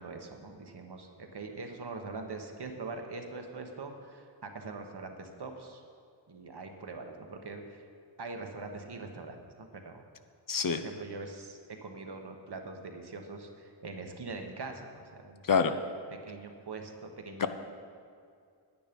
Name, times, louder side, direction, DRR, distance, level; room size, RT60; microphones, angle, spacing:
voice 1, 0.0-5.8 6.3-7.9 8.2-10.0 10.7-15.8 16.1-17.5, right 3 dB, 60° right, 4 dB, 1.2 m, -43 dB
voice 2, 10.5-10.8 15.4-15.7 17.4-17.5, left 6 dB, 45° left, 9 dB, 0.6 m, -26 dB
9.5 x 9.3 x 5.2 m, 2.3 s
wide cardioid pair, 60°, 45 cm